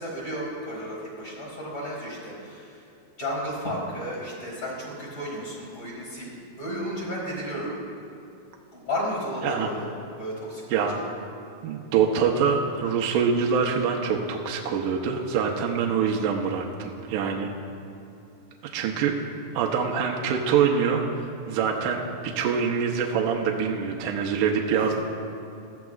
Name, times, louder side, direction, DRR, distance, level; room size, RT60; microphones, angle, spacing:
voice 1, 0.0-2.8 3.2-6.3 6.6-7.8 8.7-9.9 10.2-11.1 24.7-24.9, equal, 30° left, -6 dB, 3.8 m, -33 dB
voice 2, 11.6-17.5 18.7-19.1 19.5-21.0 21.5-22.0 22.4-24.9, right 6 dB, 75° right, 0 dB, 2.2 m, -24 dB
19.0 x 13.5 x 2.4 m, 2.7 s
omnidirectional pair, 4.1 m